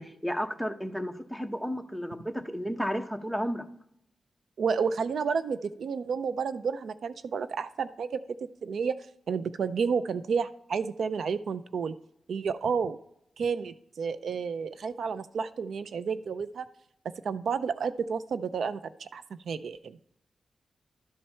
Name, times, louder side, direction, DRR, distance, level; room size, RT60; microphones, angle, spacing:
voice 1, 0.0-3.6, equal, 5° right, 8 dB, 0.9 m, -33 dB
voice 2, 4.6-8.2 8.6-9.0 9.3-11.9 12.3-13.0 13.4-16.7 17.2-20.0, right 6 dB, 75° right, 13 dB, 0.4 m, -31 dB
12.0 x 4.3 x 5.5 m, 0.77 s
cardioid pair, 75°, 0 cm